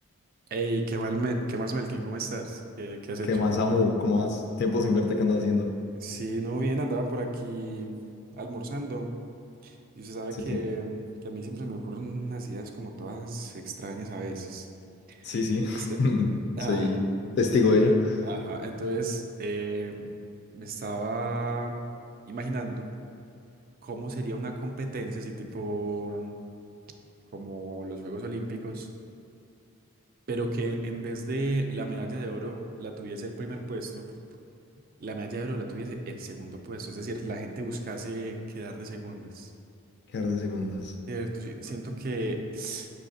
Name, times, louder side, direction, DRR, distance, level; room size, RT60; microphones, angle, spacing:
voice 1, 0.5-3.4 6.0-7.9 8.3-9.1 9.6-14.7 15.1-15.2 15.7-16.0 16.6-16.9 18.2-20.1 20.5-21.8 22.3-22.9 23.8-26.3 27.3-28.9 30.3-34.1 35.0-39.5 41.1-42.9, right 2 dB, 40° right, 4 dB, 0.3 m, -33 dB
voice 2, 3.3-5.7 15.2-16.3 16.7-17.0 17.4-18.2 40.1-40.9, left 3 dB, 50° left, 2 dB, 0.3 m, -24 dB
5.6 x 3.3 x 2.6 m, 2.6 s
head